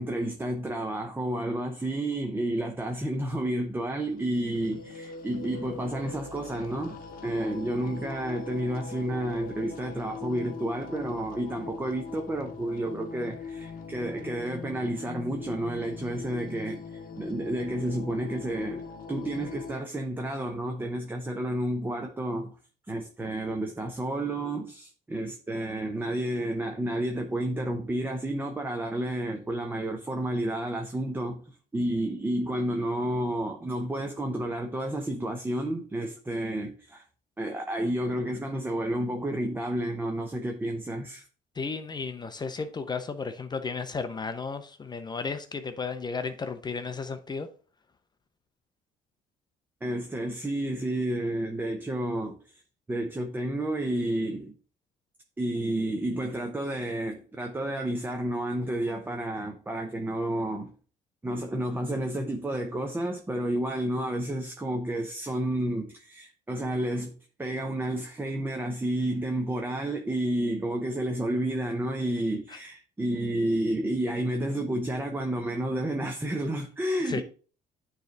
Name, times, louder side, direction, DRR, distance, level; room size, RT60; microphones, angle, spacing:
voice 1, 0.0-22.5 22.9-31.4 31.7-37.0 37.4-41.2 49.8-52.4 52.9-54.5 55.4-60.7 61.2-67.1 67.4-77.2, right 1 dB, 10° right, 0.7 m, -30 dB
sound 1, 4.0-19.7, left 5 dB, 60° left, 1.0 m, -41 dB
voice 2, 41.6-47.5 72.5-72.6 77.1-77.2, left 4 dB, 25° left, 0.6 m, -34 dB
9.3 x 3.3 x 3.9 m
cardioid pair, 110°, 17 cm